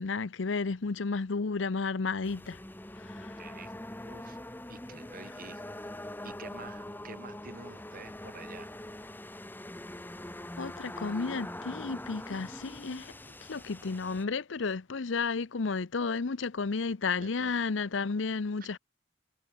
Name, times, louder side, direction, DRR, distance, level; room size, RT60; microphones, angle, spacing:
voice 1, 0.0-2.6 3.0-3.4 10.6-13.1 13.4-18.8, left 4 dB, 85° left, 0.7 m, -32 dB
sound 1, 2.2-14.2, left 1 dB, 10° left, 1.2 m, -43 dB
voice 2, 3.4-3.7 4.0-4.4 4.7-5.6 6.2-8.7 17.2-17.6 18.6-18.7, right 4 dB, 50° right, 3.2 m, -48 dB
head